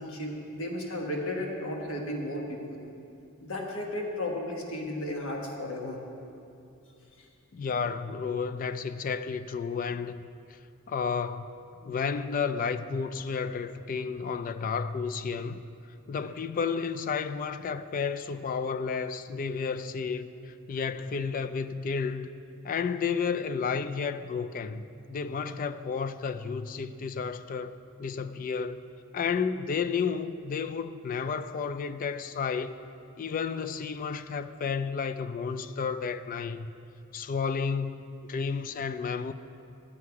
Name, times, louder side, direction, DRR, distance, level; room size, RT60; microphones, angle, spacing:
voice 1, 0.0-2.8 3.4-6.0, left 1 dB, 65° left, 1.3 m, -34 dB
voice 2, 7.5-10.3 10.9-11.5 11.8-15.6 16.1-22.3 22.6-28.8 29.1-32.8 33.2-36.7 37.1-39.3, left 5 dB, 40° left, 0.3 m, -32 dB
11.5 x 8.4 x 4.7 m
head